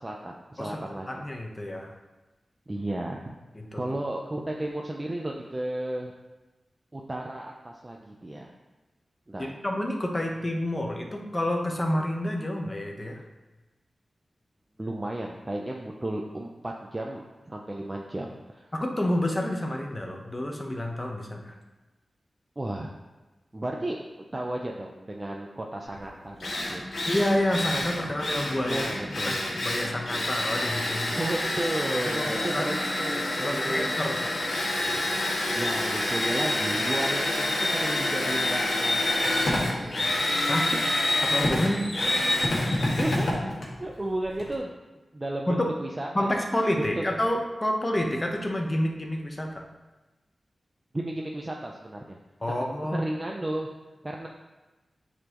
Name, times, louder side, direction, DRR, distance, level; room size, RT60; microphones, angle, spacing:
voice 1, 0.0-1.3 2.7-3.4 3.7-6.1 6.9-8.5 9.3-9.5 14.8-18.7 22.6-22.9 23.5-24.0 24.3-26.9 28.7-29.5 31.1-34.0 34.9-35.0 35.4-40.0 42.9-43.3 43.8-44.7 45.1-46.4 46.7-47.0 50.9-52.2 52.9-53.7 54.0-54.3, right 1 dB, 25° right, 0 dB, 0.6 m, -34 dB
voice 2, 0.6-1.9 3.5-3.8 9.4-13.2 18.7-21.6 27.1-29.4 29.6-31.1 32.1-32.7 33.4-34.2 40.5-40.7 41.2-41.9 45.5-45.7 46.1-49.6 52.4-53.0, left 1 dB, 25° left, 1 dB, 1.0 m, -29 dB
Drill, 26.0-26.1 26.4-44.5, left 1 dB, 75° left, 1.6 m, -27 dB
9.4 x 4.1 x 3.0 m, 1.1 s
wide cardioid pair, 75°, 0 cm